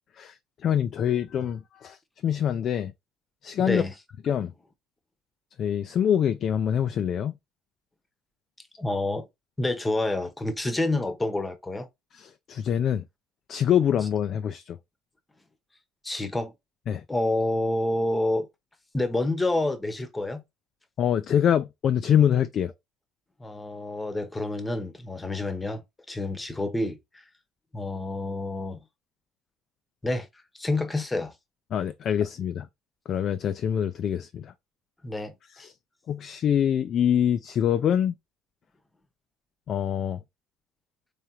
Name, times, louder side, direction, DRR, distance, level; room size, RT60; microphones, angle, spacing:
voice 1, 0.6-2.0 2.2-2.9 3.4-3.8 4.2-4.5 5.6-7.3 12.1-13.0 13.5-14.8 16.9-17.0 21.0-22.7 31.7-32.7 33.1-34.5 35.6-35.7 36.1-38.1 39.7-40.2, left 9 dB, 50° left, 0.3 m, -25 dB
voice 2, 8.8-9.3 9.6-11.9 16.0-16.5 17.1-18.5 18.9-20.4 23.4-25.8 26.1-27.0 27.7-28.8 30.0-30.3 30.6-31.3 35.0-35.7, left 2 dB, 15° left, 0.9 m, -28 dB
3.5 x 3.4 x 2.9 m
hypercardioid pair, 60°, 0 cm